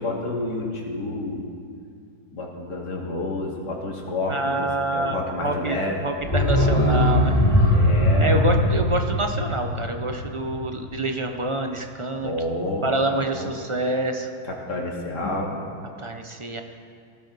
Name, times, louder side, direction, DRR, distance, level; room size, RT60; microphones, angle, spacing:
voice 1, 0.0-1.4 2.3-6.1 7.7-8.4 12.2-13.5 14.4-15.6, left 2 dB, 85° left, -1 dB, 2.7 m, -29 dB
voice 2, 4.3-7.3 8.2-12.3 12.8-14.3 16.0-16.6, right 2 dB, 45° right, 4 dB, 0.4 m, -27 dB
sound 1, 6.2-11.0 11.3-11.4, left 1 dB, 25° left, 4.6 m, -20 dB
19.0 x 16.0 x 4.0 m, 2.3 s
omnidirectional pair, 1.8 m